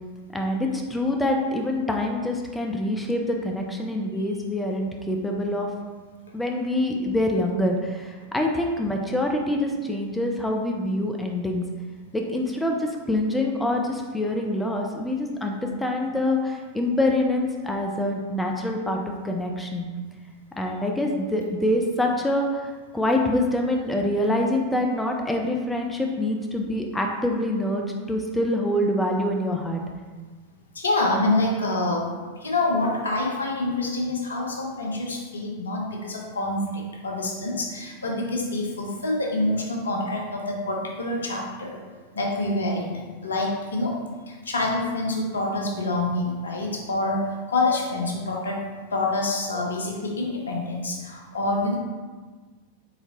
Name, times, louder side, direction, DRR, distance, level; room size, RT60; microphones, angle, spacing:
voice 1, 0.3-5.7 6.3-11.6 12.1-19.0 19.2-19.8 20.6-29.8, left 1 dB, 5° left, 1 dB, 0.4 m, -25 dB
voice 2, 30.7-41.8 42.1-44.0 44.3-48.6 48.9-51.8, left 2 dB, 70° left, 0 dB, 0.7 m, -26 dB
4.1 x 4.0 x 2.8 m, 1.4 s
figure-of-eight pair, 90°, 0 cm